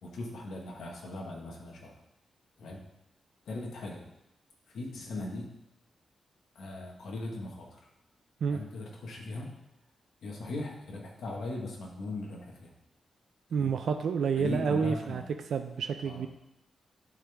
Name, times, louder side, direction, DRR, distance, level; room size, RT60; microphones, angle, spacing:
voice 1, 0.0-1.9 2.6-2.8 3.5-4.0 4.7-5.5 6.5-7.8 8.5-9.5 10.2-12.7 13.5-13.7 14.4-15.2 16.0-16.2, left 2 dB, 90° left, -1 dB, 1.3 m, -39 dB
voice 2, 13.5-15.2 15.5-16.3, right 6 dB, 75° right, 6 dB, 0.4 m, -29 dB
11.0 x 3.8 x 3.4 m, 0.83 s
wide cardioid pair, 110°, 0 cm